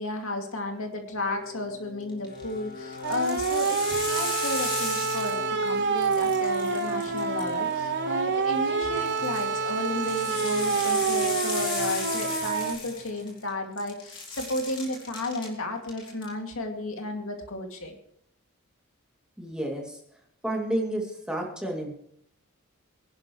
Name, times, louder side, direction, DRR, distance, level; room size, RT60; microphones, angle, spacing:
voice 1, 0.0-17.9, left 1 dB, 70° left, 3 dB, 2.4 m, -33 dB
sound 1, 0.8-13.8, left 4 dB, 40° left, 1.5 m, -44 dB
sound 2, 2.1-2.4 2.9-5.7 6.0-7.8 9.0-13.5 13.8-15.5 15.8-16.3, left 3 dB, 20° left, 3.1 m, -36 dB
sound 3, 3.0-12.7, right 4 dB, 55° right, 1.0 m, -27 dB
voice 2, 19.4-20.0 20.4-21.9, right 1 dB, 5° right, -1 dB, 2.6 m, -30 dB
24.5 x 11.0 x 3.2 m, 0.68 s
head